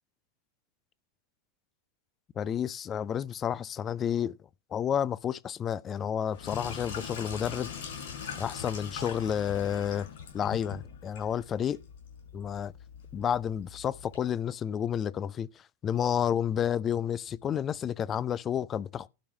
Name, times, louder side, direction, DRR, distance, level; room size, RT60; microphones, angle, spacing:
voice 1, 2.4-4.4 4.7-7.7 8.4-10.1 10.3-11.8 12.3-12.7 13.1-15.5 15.8-19.1, left 9 dB, 25° left, 0.4 m, -30 dB
Sink (filling or washing), 6.3-14.2, left 6 dB, 55° left, 5.9 m, -42 dB
11.5 x 4.7 x 7.0 m
figure-of-eight pair, 90°, 0 cm